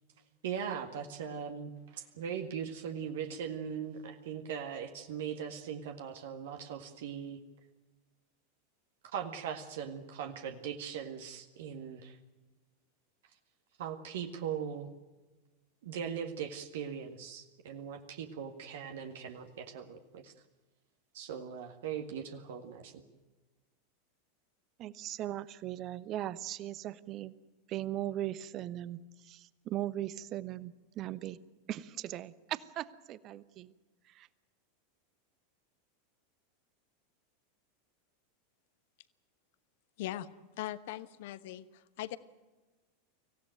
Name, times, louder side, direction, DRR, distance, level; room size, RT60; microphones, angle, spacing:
voice 1, 0.4-7.4 9.1-12.2 13.8-14.9 15.8-20.3 21.1-23.0, right 8 dB, 60° right, 6 dB, 1.8 m, -40 dB
voice 2, 24.8-27.3 27.7-31.4 31.7-33.7 34.1-34.3, right 13 dB, 40° right, 17 dB, 1.0 m, -39 dB
voice 3, 40.6-41.6 42.0-42.2, left 14 dB, 55° left, 15 dB, 1.1 m, -39 dB
25.0 x 16.5 x 9.1 m, 1.2 s
figure-of-eight pair, 85°, 0 cm